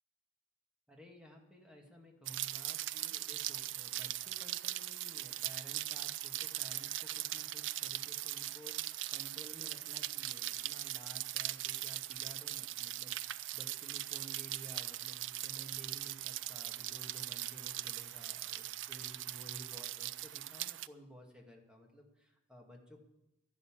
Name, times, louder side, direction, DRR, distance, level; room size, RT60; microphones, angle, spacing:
voice 1, 0.9-23.0, equal, 5° right, 0 dB, 2.2 m, -55 dB
Rain, 2.3-20.9, right 15 dB, 70° right, 0.4 m, -40 dB
12.0 x 11.0 x 7.5 m, 0.88 s
head